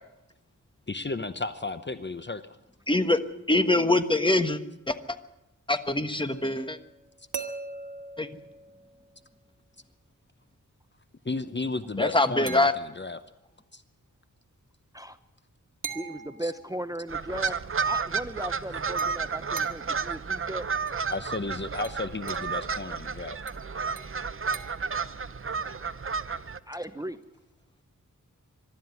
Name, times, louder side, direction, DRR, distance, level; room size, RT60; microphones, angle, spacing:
voice 1, 0.9-2.4 11.2-13.2 13.7-13.8 16.4-16.5 17.4-17.5 21.1-23.4, left 3 dB, 35° left, 11 dB, 0.9 m, -33 dB
voice 2, 2.9-3.2 3.5-4.6 4.9-5.0 5.7-6.8 8.2-8.3 12.0-12.7, left 2 dB, 15° left, 9 dB, 1.3 m, -23 dB
sound 1, 6.3-9.4 12.5-13.3 15.8-17.0 19.0-20.0 20.9-21.1 21.8-22.6 23.5-25.0, right 5 dB, 70° right, 1.8 m, -42 dB
voice 3, 15.9-17.5 17.8-20.7 26.7-27.2, right 1 dB, 10° right, 11 dB, 0.8 m, -36 dB
sound 2, 17.1-26.6, right 5 dB, 40° right, 0.8 m, -31 dB
23.0 x 12.5 x 9.6 m, 0.94 s
wide cardioid pair, 90°, 33 cm